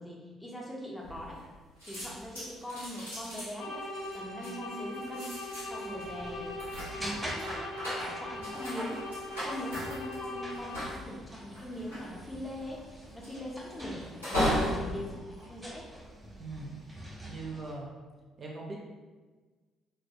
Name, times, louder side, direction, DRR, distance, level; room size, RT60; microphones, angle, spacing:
voice 1, 0.0-1.4 1.8-3.9 4.1-5.4 5.7-6.6 7.0-9.1 9.4-12.9 13.1-15.9, left 1 dB, 15° left, -3 dB, 0.6 m, -41 dB
sound 1, 1.0-1.5 1.8-16.4 16.9-17.3, equal, 85° left, 0.8 m, -37 dB
sound 2, 3.5-11.1, left 2 dB, 70° left, 0.5 m, -41 dB
sound 3, 3.9-17.7, right 1 dB, 10° right, 0.8 m, -47 dB
voice 2, 16.4-16.8 17.3-17.9 18.4-18.8, right 3 dB, 40° right, -2 dB, 0.4 m, -41 dB
2.2 x 2.1 x 2.7 m, 1.4 s
figure-of-eight pair, 45°, 0 cm